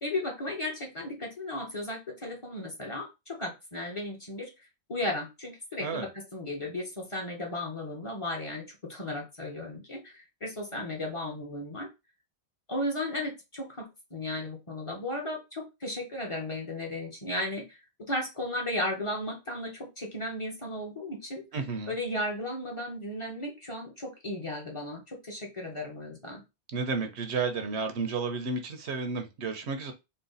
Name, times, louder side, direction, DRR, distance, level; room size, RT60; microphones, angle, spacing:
voice 1, 0.0-4.5 4.9-11.9 12.7-21.5 21.9-26.4, left 1 dB, 30° left, 0 dB, 1.1 m, -35 dB
voice 2, 21.5-21.9 26.7-29.9, right 4 dB, 80° right, 6 dB, 1.1 m, -32 dB
4.1 x 2.2 x 4.0 m, 0.24 s
omnidirectional pair, 1.1 m